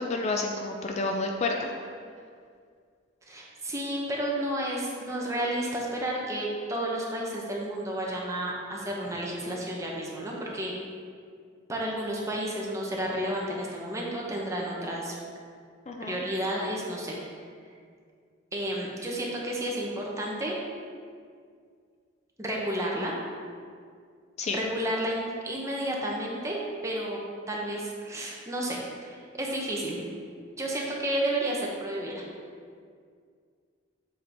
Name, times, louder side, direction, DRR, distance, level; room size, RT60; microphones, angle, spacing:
voice 1, 0.0-1.7 15.9-16.2 24.4-24.6, left 3 dB, 35° left, 2 dB, 0.4 m, -30 dB
voice 2, 3.3-10.7 11.7-15.2 16.0-17.2 18.5-20.5 22.4-23.1 24.5-27.2 27.5-30.0 30.6-32.2, right 1 dB, 15° right, -3 dB, 0.9 m, -31 dB
7.6 x 4.5 x 3.5 m, 2.1 s
head